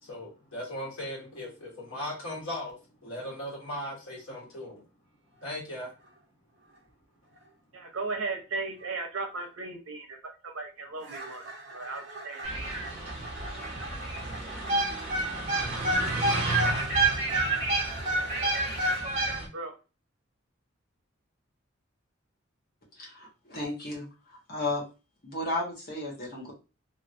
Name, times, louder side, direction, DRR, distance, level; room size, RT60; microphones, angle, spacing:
voice 1, 0.0-4.8 5.4-5.9, left 1 dB, 80° left, -1 dB, 1.4 m, -38 dB
sound 1, 5.3-5.6 5.9-6.2 6.6-6.9 7.3-7.5 7.9-8.1 8.8-8.9 9.3-9.5 11.0-19.1, right 2 dB, 60° right, 1.0 m, -43 dB
voice 2, 7.7-11.5 11.7-12.9 19.5-19.7, right 3 dB, 85° right, 4 dB, 0.9 m, -36 dB
sound 2, 12.4-19.5, right 2 dB, 30° right, 1.2 m, -28 dB
voice 3, 23.0-24.0 24.5-24.8 25.2-26.5, left 2 dB, 45° left, -3 dB, 1.2 m, -33 dB
3.1 x 3.0 x 2.6 m, 0.31 s
head